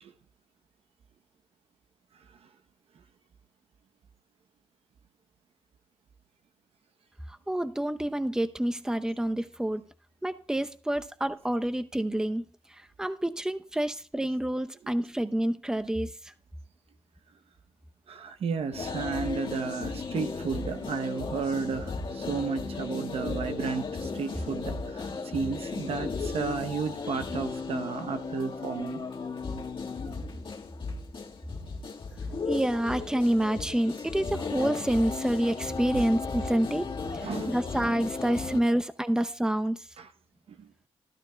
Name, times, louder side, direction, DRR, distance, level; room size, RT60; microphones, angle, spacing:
voice 1, 7.3-9.8 10.2-12.4 12.7-16.1 32.5-36.9 37.5-39.9, right 1 dB, 5° right, 0.7 m, -28 dB
voice 2, 18.1-29.0 37.2-37.5 40.0-40.1 40.5-40.7, right 5 dB, 85° right, 0.9 m, -33 dB
sound 1, 18.7-38.6, left 4 dB, 60° left, 1.8 m, -35 dB
14.0 x 12.5 x 2.3 m
cardioid pair, 70°, 10 cm